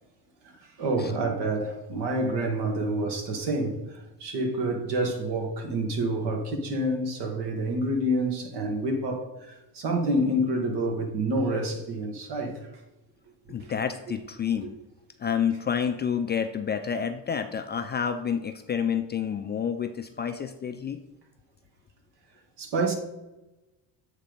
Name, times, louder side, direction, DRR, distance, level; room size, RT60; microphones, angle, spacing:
voice 1, 0.6-12.7 13.6-13.7 14.1-14.2 14.6-14.7 22.6-22.9, right 1 dB, 65° right, 1.7 m, -28 dB
voice 2, 13.5-14.7 15.2-21.0, left 7 dB, 25° left, 0.3 m, -29 dB
8.3 x 3.3 x 5.2 m
cardioid pair, 110°, 42 cm